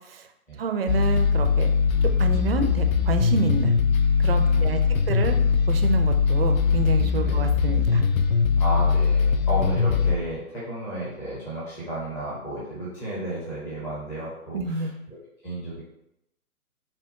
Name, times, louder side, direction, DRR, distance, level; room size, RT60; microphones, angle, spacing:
voice 1, 0.6-1.7 2.2-3.7 4.2-4.8 5.1-5.4 5.7-8.0 14.5-14.9, right 4 dB, 40° right, 6 dB, 0.5 m, -28 dB
sound 1, 0.9-10.2, left 6 dB, 65° left, 0.6 m, -21 dB
voice 2, 4.4-5.2 7.2-7.4 8.6-15.2 15.4-15.8, right 1 dB, 5° left, -8 dB, 0.6 m, -33 dB
5.6 x 2.4 x 3.9 m, 0.83 s
figure-of-eight pair, 140°, 44 cm